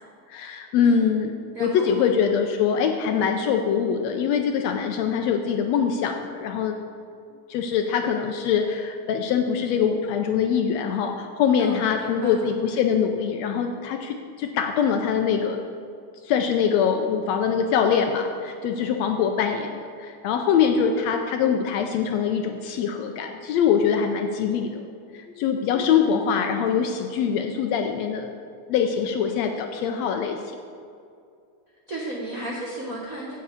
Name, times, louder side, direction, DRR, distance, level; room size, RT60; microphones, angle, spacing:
voice 1, 0.3-1.3 1.6-6.7 7.5-15.6 16.2-24.9 25.1-28.3 28.7-30.6, left 7 dB, 80° left, 4 dB, 1.6 m, -23 dB
voice 2, 1.5-2.1 11.6-12.4 25.8-26.3 31.9-33.4, right 1 dB, 70° right, -3 dB, 0.8 m, -34 dB
7.4 x 7.2 x 8.3 m, 2.4 s
omnidirectional pair, 3.5 m